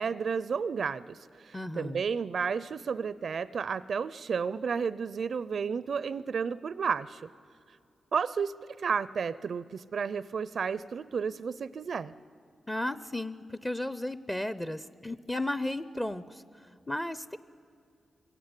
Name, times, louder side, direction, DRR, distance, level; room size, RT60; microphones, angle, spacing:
voice 1, 0.0-7.3 8.1-12.1, right 6 dB, 65° right, 17 dB, 0.5 m, -32 dB
voice 2, 1.5-2.0 12.7-17.4, left 1 dB, 15° left, 14 dB, 0.6 m, -34 dB
23.0 x 17.0 x 9.7 m, 2.5 s
cardioid pair, 80°, 0 cm